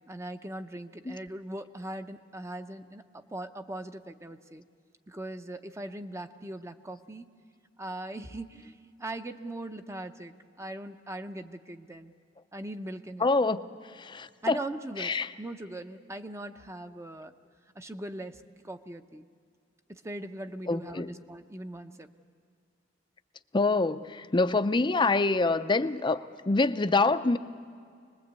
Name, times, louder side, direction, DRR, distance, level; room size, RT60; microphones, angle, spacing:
voice 1, 0.0-4.6 5.1-7.3 7.8-12.1 12.5-13.3 14.4-17.3 17.8-19.3 19.9-22.1, right 1 dB, 15° right, 7 dB, 0.7 m, -40 dB
voice 2, 13.2-13.7 14.0-14.6 15.0-15.3 20.7-21.2 23.5-27.4, left 3 dB, 25° left, 11 dB, 0.6 m, -26 dB
25.0 x 20.5 x 8.2 m, 2.2 s
head